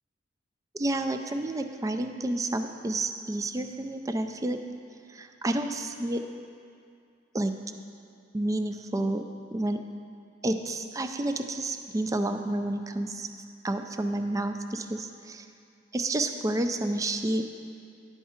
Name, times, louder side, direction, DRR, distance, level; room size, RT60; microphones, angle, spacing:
voice 1, 0.7-4.6 5.1-6.2 7.3-7.5 8.3-9.3 9.5-9.8 10.4-13.3 13.6-15.5 15.9-17.4, right 1 dB, 20° right, 7 dB, 0.3 m, -30 dB
11.0 x 4.6 x 4.3 m, 2.4 s
head